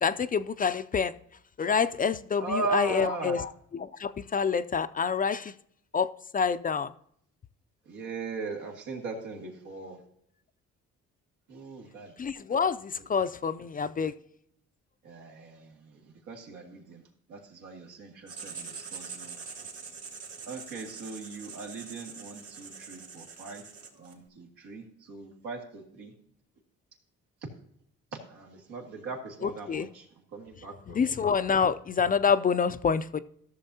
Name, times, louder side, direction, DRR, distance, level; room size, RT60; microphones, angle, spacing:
voice 1, 0.0-1.1 1.6-5.5 5.9-6.9 12.2-14.1 29.4-29.9 30.9-33.2, left 6 dB, 30° left, 0.4 m, -27 dB
voice 2, 2.4-3.5 7.9-10.0 11.5-12.1 15.0-17.0 17.3-19.3 20.5-23.6 24.0-26.1 28.1-30.1 30.3-31.1, right 4 dB, 90° right, 2.0 m, -38 dB
Writing, 18.3-24.2, right 5 dB, 50° right, 2.2 m, -44 dB
14.0 x 6.6 x 2.8 m
cardioid pair, 90°, 30 cm